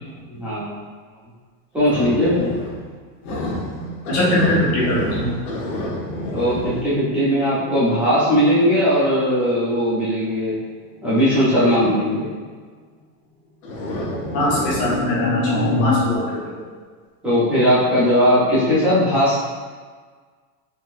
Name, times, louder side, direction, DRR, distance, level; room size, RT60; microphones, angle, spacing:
voice 1, 0.3-0.8 1.7-2.6 6.3-10.5 11.0-12.3 17.2-19.4, equal, 5° right, -13 dB, 0.5 m, -18 dB
sound 1, 1.8-3.0 3.2-10.2 11.0-11.3 13.6-16.2, left 2 dB, 65° left, 0.9 m, -27 dB
voice 2, 4.1-5.3 14.3-16.6, equal, 45° left, -7 dB, 1.4 m, -21 dB
3.9 x 2.6 x 2.5 m, 1.5 s
supercardioid pair, 165°, 48 cm